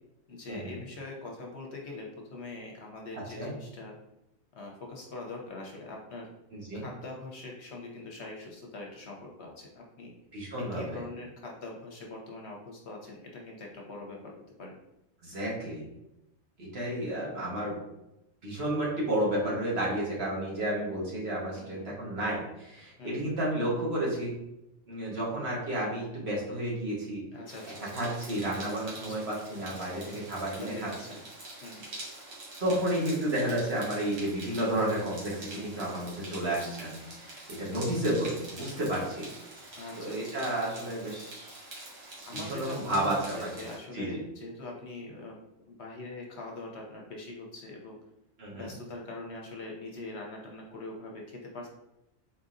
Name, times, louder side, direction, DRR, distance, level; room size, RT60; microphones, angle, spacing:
voice 1, 0.3-3.9 4.5-6.3 6.7-10.1 10.6-14.3 14.6-14.8 21.5-22.0 23.0-23.2 27.3-27.8 29.0-29.2 30.6-31.2 31.6-31.9 35.6-36.0 37.7-37.9 39.8-40.4 42.2-45.4 45.7-48.0 48.5-51.7, left 2 dB, 60° left, 0 dB, 0.9 m, -43 dB
voice 2, 3.1-3.5 6.5-6.8 10.3-11.0 15.2-15.8 16.6-17.7 18.4-24.3 24.9-27.2 27.8-30.9 32.6-39.3 40.0-41.5 42.3-43.5 43.9-44.2 48.4-48.7, right 1 dB, 50° right, -5 dB, 1.4 m, -31 dB
sound 1, 27.5-43.8, right 2 dB, 70° right, 1.5 m, -46 dB
4.1 x 3.8 x 2.5 m, 0.90 s
omnidirectional pair, 1.4 m